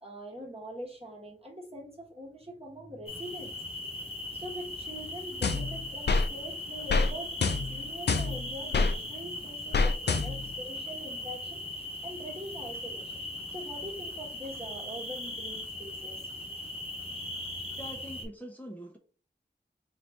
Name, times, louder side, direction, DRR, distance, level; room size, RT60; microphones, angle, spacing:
voice 1, 0.0-3.6 4.3-13.2 13.5-16.2, equal, 30° right, -1 dB, 1.2 m, -43 dB
sound 1, 3.1-18.2, left 1 dB, 30° left, 1.0 m, -39 dB
sound 2, 5.4-6.3 6.9-7.1 7.4-8.9 9.7-10.6, left 4 dB, 70° left, 0.4 m, -27 dB
voice 2, 17.8-19.0, equal, 10° left, 1 dB, 0.7 m, -43 dB
4.0 x 2.6 x 3.4 m, 0.41 s
wide cardioid pair, 60°, 19 cm